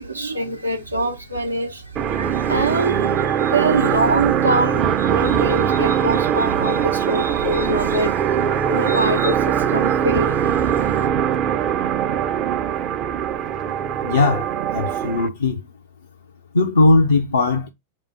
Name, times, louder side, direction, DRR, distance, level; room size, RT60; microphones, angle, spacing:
voice 1, 0.0-11.1, right 2 dB, 85° right, 0.9 m, -24 dB
sound 1, 2.0-15.3, right 9 dB, 35° right, 0.5 m, -21 dB
voice 2, 14.0-15.6 16.5-17.7, left 3 dB, 75° left, 0.5 m, -18 dB
4.8 x 3.0 x 3.3 m
figure-of-eight pair, 90°, 0 cm